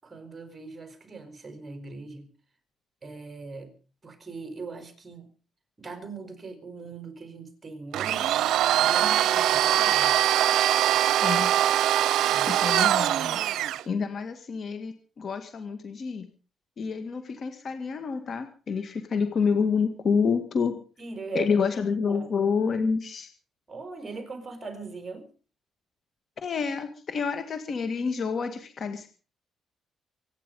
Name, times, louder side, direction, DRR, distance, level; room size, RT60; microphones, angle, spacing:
voice 1, 0.0-2.3 3.0-3.7 4.0-5.3 5.8-8.3 8.8-10.2 12.2-12.6 20.6-21.7 22.0-22.3 23.7-25.3, right 4 dB, 25° right, 7 dB, 4.9 m, -40 dB
Domestic sounds home sounds, 7.9-13.8, right 12 dB, 85° right, 0.7 m, -22 dB
voice 2, 11.2-11.5 12.5-13.4 13.9-16.3 16.8-20.7 21.4-23.3 26.4-29.1, left 5 dB, 50° left, 8 dB, 1.8 m, -28 dB
25.0 x 10.0 x 5.3 m, 0.39 s
cardioid pair, 110°, 0 cm